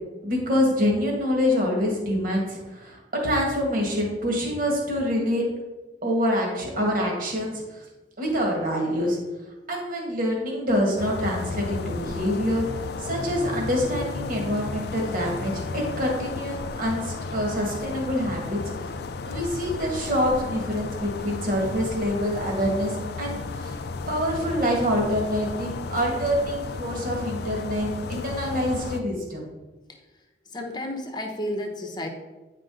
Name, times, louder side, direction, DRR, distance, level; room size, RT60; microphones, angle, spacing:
voice 1, 0.2-5.5 6.0-7.8 8.2-9.2 9.7-18.6 19.3-23.8 24.1-29.4, equal, 50° right, -1 dB, 2.0 m, -26 dB
sound 1, 11.0-29.0, left 3 dB, 60° left, 0.4 m, -33 dB
voice 2, 30.5-32.1, left 1 dB, 25° left, 4 dB, 1.0 m, -32 dB
9.6 x 5.1 x 3.9 m, 1.2 s
head